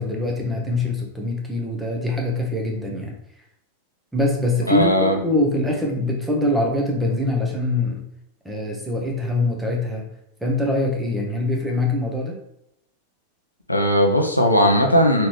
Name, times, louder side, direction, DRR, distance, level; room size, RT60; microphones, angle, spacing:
voice 1, 0.0-3.1 4.1-8.0 8.4-10.1 10.4-12.4, left 2 dB, 5° right, -1 dB, 0.9 m, -23 dB
voice 2, 4.7-5.2 13.7-15.3, equal, 85° left, 1 dB, 0.6 m, -18 dB
3.8 x 3.2 x 3.1 m, 0.79 s
figure-of-eight pair, 90°, 0 cm